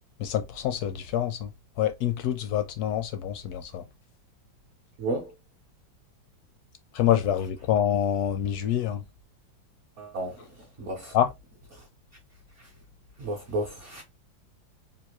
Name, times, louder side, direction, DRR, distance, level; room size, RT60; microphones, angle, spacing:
voice 1, 0.2-1.5 1.8-3.8 6.9-9.0 11.1-11.3, left 10 dB, 75° left, 0.9 m, -26 dB
voice 2, 5.0-5.3 10.0-10.4 10.8-11.1 11.7-11.8 13.2-14.0, right 2 dB, 60° right, 0.8 m, -32 dB
3.5 x 2.5 x 2.9 m
omnidirectional pair, 2.1 m